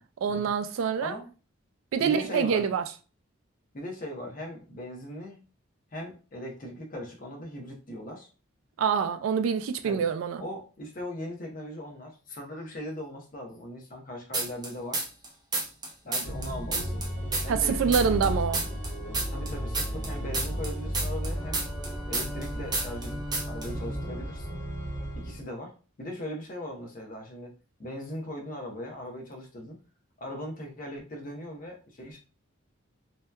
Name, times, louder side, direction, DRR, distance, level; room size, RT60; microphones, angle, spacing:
voice 1, 0.2-1.1 1.9-2.8 8.8-10.4 17.5-18.6, right 6 dB, 75° right, 0.3 m, -26 dB
voice 2, 2.0-2.7 3.7-5.4 5.9-8.3 9.8-10.1 10.4-15.0 16.0-17.0 17.4-18.4 19.3-21.6 22.1-23.2 23.5-24.6 25.2-27.5 27.8-29.8 30.2-32.2, left 1 dB, 40° left, 0.6 m, -39 dB
sound 1, 14.3-15.3 15.5-18.3 18.5-22.5 22.7-23.1 23.3-23.7, right 3 dB, 20° right, 0.5 m, -30 dB
Organ, 16.2-25.4, equal, 15° left, 0.9 m, -34 dB
2.7 x 2.2 x 2.2 m
head